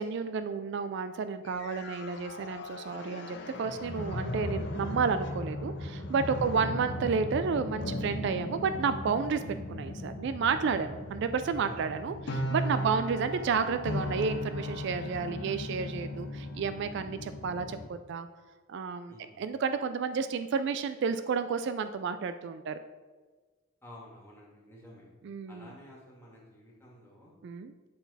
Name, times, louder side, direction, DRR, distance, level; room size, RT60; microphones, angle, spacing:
voice 1, 0.0-9.4 9.7-18.3 18.7-22.8 25.2-25.7 27.4-27.7, right 5 dB, 60° right, 10 dB, 0.3 m, -31 dB
sound 1, 1.5-17.9, left 1 dB, 55° left, 0.7 m, -37 dB
voice 2, 23.8-25.1 25.5-27.3, equal, 10° left, -5 dB, 1.8 m, -50 dB
9.0 x 4.0 x 4.1 m, 1.4 s
head